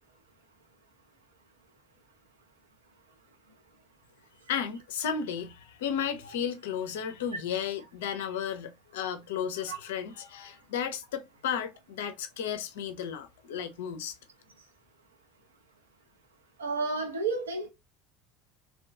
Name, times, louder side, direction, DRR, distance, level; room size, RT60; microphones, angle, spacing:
voice 1, 4.5-14.1, left 8 dB, 70° left, 0.4 m, -34 dB
voice 2, 16.6-17.7, right 4 dB, 85° right, 0.5 m, -31 dB
2.4 x 2.2 x 2.3 m
figure-of-eight pair, 65°, 0 cm